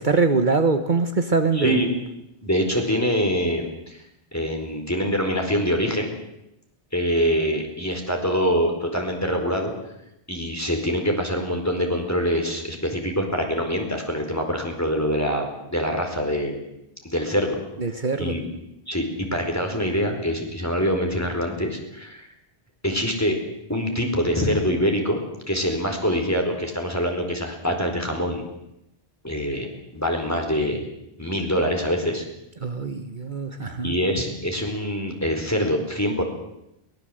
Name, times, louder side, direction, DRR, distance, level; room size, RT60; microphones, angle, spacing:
voice 1, 0.0-1.8 17.8-18.4 32.6-33.9, right 4 dB, 50° right, 8 dB, 1.4 m, -23 dB
voice 2, 1.5-2.0 2.4-4.0 4.3-6.1 6.9-9.7 10.3-16.6 17.0-17.6 18.2-18.5 18.9-22.3 22.8-23.3 23.7-28.4 29.2-29.7 29.9-30.8 31.2-32.3 33.8-36.2, equal, 15° left, 3 dB, 4.5 m, -24 dB
22.5 x 20.0 x 7.9 m, 0.84 s
omnidirectional pair, 1.1 m